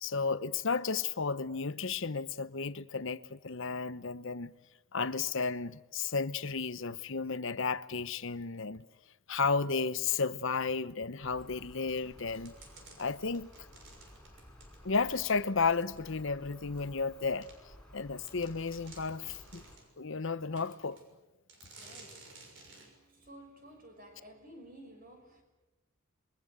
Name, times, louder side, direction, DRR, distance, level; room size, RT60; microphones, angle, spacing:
voice 1, 0.0-4.5 4.9-8.9 9.3-12.5 13.0-13.5 14.8-17.5 17.9-19.6 20.0-21.0, left 4 dB, 60° left, 0.9 m, -33 dB
sound 1, 11.2-19.8, left 1 dB, 5° left, 4.7 m, -55 dB
sound 2, 11.9-15.5 16.0-16.1 16.8-16.9 17.4-17.6 18.0-18.1 18.3-19.9 20.6-21.1 21.5-22.9, right 3 dB, 60° right, 6.4 m, -55 dB
voice 2, 21.8-25.4, right 1 dB, 40° right, 6.2 m, -54 dB
27.5 x 23.0 x 8.1 m
head